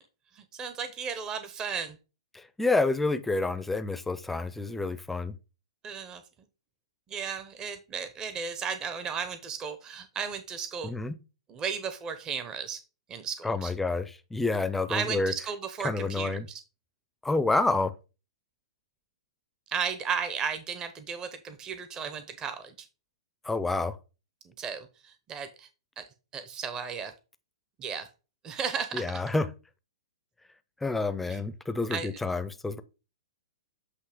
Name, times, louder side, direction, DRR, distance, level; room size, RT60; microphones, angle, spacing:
voice 1, 0.4-2.0 5.8-6.2 7.1-10.9 11.5-12.8 13.1-13.7 14.9-16.6 19.7-22.9 24.6-25.7 26.0-26.1 26.3-27.1 27.8-28.1 28.4-29.1 31.3-31.4 31.9-32.1, right 6 dB, 20° right, 0.8 m, -34 dB
voice 2, 2.3-5.3 10.8-11.2 13.4-15.3 15.8-16.5 17.2-17.9 23.4-24.0 28.9-29.5 30.8-32.8, left 3 dB, 5° left, 0.6 m, -28 dB
8.1 x 2.8 x 5.0 m
hypercardioid pair, 125°, 3 cm